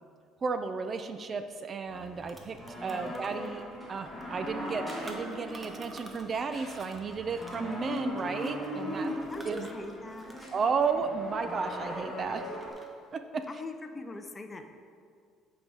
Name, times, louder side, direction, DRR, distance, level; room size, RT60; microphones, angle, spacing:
voice 1, 0.4-3.6 3.9-9.1 9.5-9.7 10.5-12.4 13.1-13.4, right 5 dB, 40° right, 9 dB, 0.4 m, -33 dB
sound 1, 1.6-1.7 2.0-6.4 6.6-10.7 10.9-12.1 12.4-13.1, right 1 dB, 20° right, 0.9 m, -51 dB
sound 2, 1.9-12.7, equal, ahead, 1.8 m, -39 dB
voice 2, 2.7-3.5 9.3-10.5 13.5-14.7, left 2 dB, 25° left, 6 dB, 0.6 m, -42 dB
8.1 x 5.0 x 3.9 m, 2.2 s
cardioid pair, 95°, 0 cm